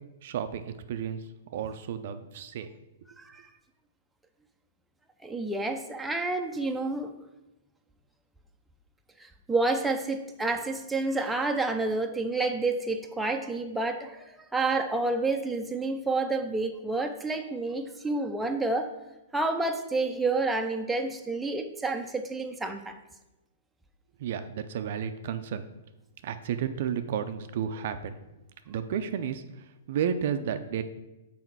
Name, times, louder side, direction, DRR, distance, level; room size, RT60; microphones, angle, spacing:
voice 1, 0.2-1.2 1.5-2.7 24.2-25.7 26.2-28.2 28.7-30.8, right 8 dB, 60° right, 10 dB, 0.5 m, -32 dB
voice 2, 5.2-7.1 9.2-14.2 14.5-18.9 19.3-22.9, right 3 dB, 5° right, 4 dB, 0.6 m, -29 dB
5.7 x 4.3 x 6.1 m, 1.0 s
hypercardioid pair, 120°, 0 cm